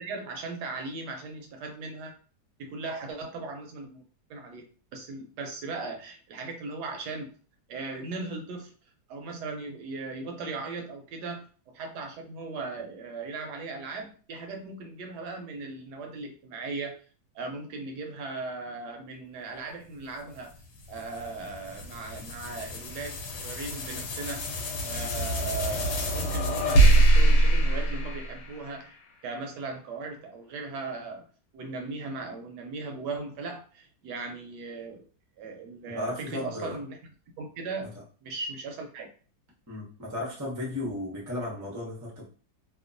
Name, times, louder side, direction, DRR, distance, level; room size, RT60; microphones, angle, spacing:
voice 1, 0.0-2.2 2.6-4.7 4.9-7.3 7.7-8.7 9.1-17.0 17.3-20.5 20.9-24.4 24.8-29.0 29.2-31.2 31.5-35.1 35.4-37.0 37.4-37.9 38.2-39.1, right 3 dB, 75° right, 1.1 m, -38 dB
sound 1, 20.3-28.9, right 2 dB, 80° left, 1.2 m, -25 dB
voice 2, 35.9-36.8 37.8-37.9 39.7-42.2, left 1 dB, 25° right, 0.4 m, -34 dB
2.9 x 2.2 x 2.5 m
omnidirectional pair, 1.8 m